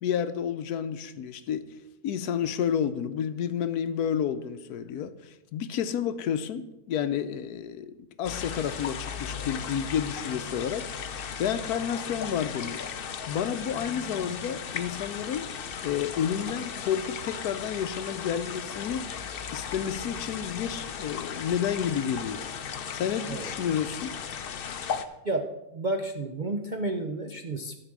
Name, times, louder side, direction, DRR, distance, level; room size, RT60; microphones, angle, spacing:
voice 1, 0.0-1.6 2.0-10.9 11.4-12.9 13.3-15.5 15.8-19.1 19.5-22.5 22.9-24.2, left 8 dB, 75° left, 12 dB, 1.1 m, -30 dB
sound 1, 8.2-25.0, left 7 dB, 60° left, 0.6 m, -36 dB
voice 2, 25.2-27.8, right 2 dB, 50° right, 4 dB, 0.5 m, -31 dB
13.0 x 4.9 x 7.4 m, 0.96 s
omnidirectional pair, 1.7 m